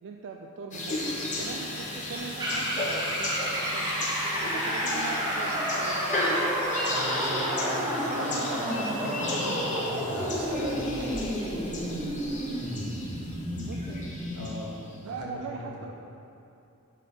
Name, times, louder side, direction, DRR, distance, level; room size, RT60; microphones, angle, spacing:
voice 1, 0.0-4.1 4.4-6.3 13.6-14.0 14.8-15.9, right 4 dB, 55° right, 1 dB, 0.3 m, -41 dB
sound 1, 0.7-14.7, left 1 dB, 35° left, 1.1 m, -34 dB
sound 2, 2.4-14.5, equal, 20° right, 1.2 m, -30 dB
voice 2, 6.8-9.6 10.1-11.6 14.3-14.7 15.0-15.7, equal, 80° right, -2 dB, 1.2 m, -38 dB
10.5 x 3.5 x 3.8 m, 2.8 s
head